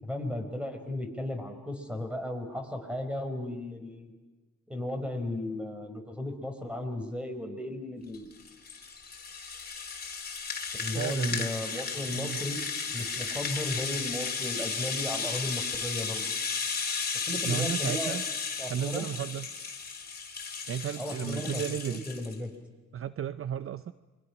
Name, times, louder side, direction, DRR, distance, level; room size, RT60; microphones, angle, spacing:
voice 1, 0.0-4.1 4.7-8.3 10.8-12.6 12.9-16.3 17.3-18.2 18.6-19.1 21.0-21.6 21.9-22.5, left 1 dB, 5° right, 5 dB, 4.8 m, -35 dB
Rattle (instrument), 8.1-22.4, left 5 dB, 30° left, 3.8 m, -34 dB
voice 2, 11.0-11.5 12.1-12.4 17.4-18.2 18.7-19.5 20.7-22.1 22.9-23.9, right 9 dB, 45° right, 14 dB, 0.7 m, -33 dB
28.5 x 23.0 x 6.0 m, 1.3 s
cardioid pair, 90°, 30 cm